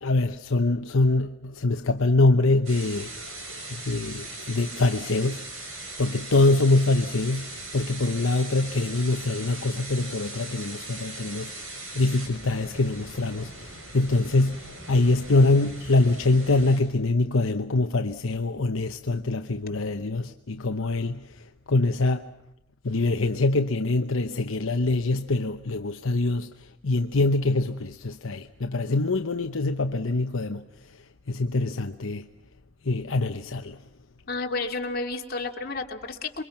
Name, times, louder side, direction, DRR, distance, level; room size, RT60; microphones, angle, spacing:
voice 1, 0.0-3.4 3.7-5.4 6.0-21.2 21.7-22.3 22.8-26.5 26.8-30.7 31.3-32.3 32.8-33.8, left 2 dB, 75° left, 0.9 m, -24 dB
sound 1, 2.7-16.8, right 2 dB, 80° right, 6.9 m, -40 dB
voice 2, 34.3-36.4, left 3 dB, 50° left, 2.7 m, -31 dB
28.0 x 23.5 x 5.9 m
head